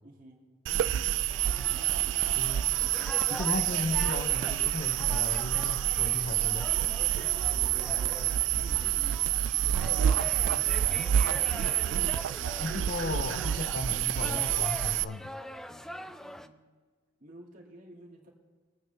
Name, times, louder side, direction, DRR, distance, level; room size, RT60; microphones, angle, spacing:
voice 1, 0.0-0.4 0.7-1.1 7.5-11.8 15.7-16.6 17.2-18.3, right 1 dB, 50° right, -1 dB, 2.3 m, -52 dB
sound 1, 0.7-15.0, right 12 dB, 90° right, 0.3 m, -28 dB
sound 2, 1.3-16.5, left 1 dB, 5° left, 0.3 m, -43 dB
voice 2, 2.3-2.6 3.3-6.7 12.6-15.3, left 2 dB, 50° left, 7 dB, 0.6 m, -36 dB
23.0 x 9.1 x 3.4 m, 1.5 s
head